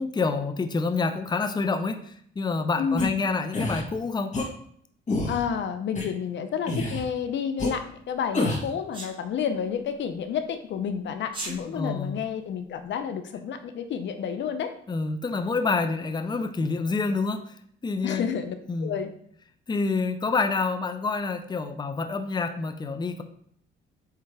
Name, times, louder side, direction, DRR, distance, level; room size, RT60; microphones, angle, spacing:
voice 1, 0.0-4.4 11.6-12.2 14.9-17.6 17.8-18.3 18.7-19.0 19.7-23.2, left 4 dB, 20° left, 8 dB, 0.6 m, -27 dB
voice 2, 2.8-3.1 5.3-14.7 18.0-19.1, left 7 dB, 65° left, 8 dB, 0.7 m, -30 dB
sound 1, 3.0-3.1 3.5-3.8 4.3-4.5 5.1-5.4 6.0-6.1 6.7-7.0 7.6-7.7 8.3-8.7, left 2 dB, 35° left, 1.9 m, -27 dB
Sneeze, 8.9-9.1 11.2-11.6, right 2 dB, 25° right, 2.1 m, -35 dB
8.1 x 3.4 x 3.4 m, 0.64 s
cardioid pair, 90°, 20 cm